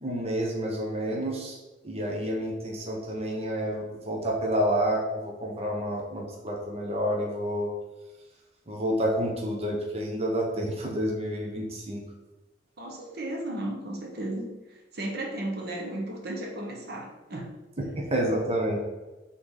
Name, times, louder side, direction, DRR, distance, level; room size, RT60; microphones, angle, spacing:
voice 1, 0.0-1.6 1.8-7.7 8.7-12.0 18.0-18.8, equal, 35° right, -1 dB, 0.9 m, -29 dB
voice 2, 12.8-17.5, right 1 dB, 60° right, 0 dB, 1.3 m, -35 dB
6.3 x 3.9 x 3.9 m, 1.1 s
head